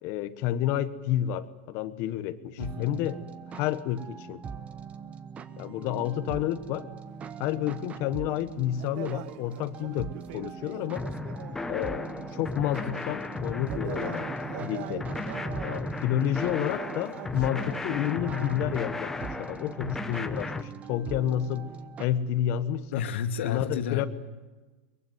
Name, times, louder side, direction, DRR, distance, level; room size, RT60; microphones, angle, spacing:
voice 1, 0.0-3.2 3.5-4.4 5.6-6.9 7.4-11.1 11.7-14.3 14.6-15.1 15.6-21.7 22.0-23.0 23.4-24.1, left 12 dB, 45° left, 13 dB, 1.3 m, -30 dB
voice 2, 2.6-2.9 22.9-24.1, left 7 dB, 80° left, 7 dB, 2.2 m, -31 dB
sound 1, 2.6-22.1, right 7 dB, 20° right, 1.1 m, -42 dB
sound 2, 7.1-13.2 13.5-18.9, right 16 dB, 50° right, 0.8 m, -43 dB
sound 3, 11.0-20.6, left 3 dB, 5° left, 1.1 m, -35 dB
23.5 x 22.5 x 9.5 m, 1.2 s
supercardioid pair, 150°, 6 cm